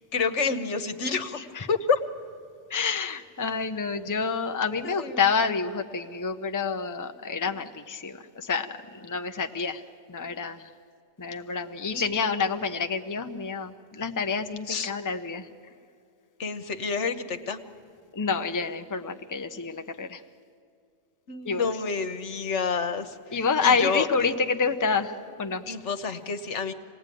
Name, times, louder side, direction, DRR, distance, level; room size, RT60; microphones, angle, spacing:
voice 1, 0.1-1.4 1.7-2.0 4.8-5.3 11.9-12.1 14.7-14.9 16.4-17.6 21.3-24.1 25.7-26.7, left 5 dB, 75° left, 9 dB, 1.4 m, -29 dB
voice 2, 2.7-9.8 10.1-10.7 11.2-15.5 18.1-20.2 21.4-21.7 23.3-25.7, left 5 dB, 20° left, 7 dB, 0.7 m, -28 dB
26.5 x 19.0 x 9.2 m, 2.3 s
omnidirectional pair, 1.2 m